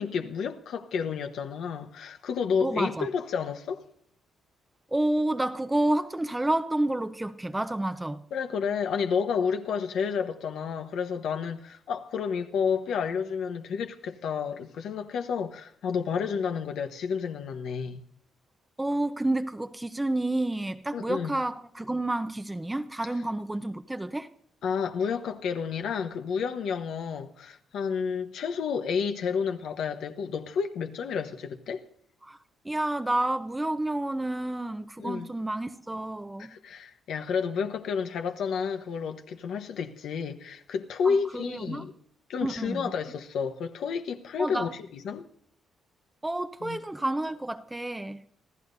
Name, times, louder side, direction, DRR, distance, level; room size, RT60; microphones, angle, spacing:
voice 1, 0.0-3.8 8.3-18.0 20.9-21.4 24.6-31.8 35.0-35.3 36.4-41.9 42.3-45.3 46.6-46.8, left 6 dB, 75° left, 1.1 m, -30 dB
voice 2, 2.6-3.1 4.9-8.2 18.8-24.3 32.2-32.4 32.6-36.5 41.0-41.8 42.4-42.9 44.4-44.7 46.2-48.2, right 1 dB, 10° right, 0.7 m, -29 dB
26.0 x 14.0 x 2.7 m
cardioid pair, 90°, 0 cm